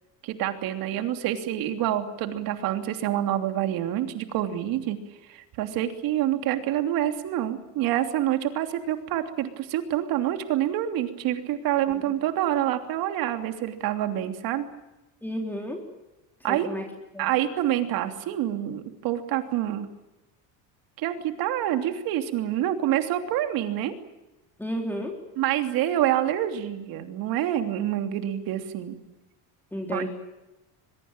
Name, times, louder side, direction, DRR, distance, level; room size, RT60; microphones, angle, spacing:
voice 1, 0.2-5.0 5.2-14.7 16.4-16.7 17.2-19.9 21.0-23.9 25.4-29.0 29.9-30.1, right 12 dB, 65° right, 6 dB, 3.2 m, -27 dB
voice 2, 15.2-15.8 16.5-16.8 17.1-17.3 24.6-25.2 29.7-30.1, equal, 5° left, 1 dB, 3.8 m, -31 dB
23.0 x 22.5 x 9.0 m, 0.99 s
cardioid pair, 135°, 38 cm